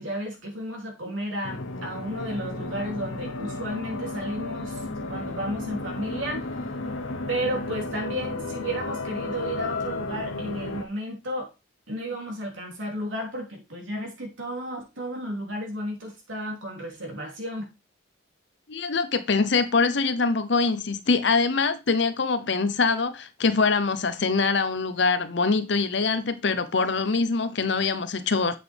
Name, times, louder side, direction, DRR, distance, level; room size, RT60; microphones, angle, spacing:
voice 1, 0.0-4.8 5.1-6.5 7.3-11.5 11.9-17.7, equal, 80° right, 3.0 m, -33 dB
sound 1, 1.4-10.8, left 2 dB, 90° left, 1.0 m, -33 dB
voice 2, 18.7-28.6, left 4 dB, 60° left, 0.8 m, -24 dB
7.8 x 6.1 x 3.5 m
head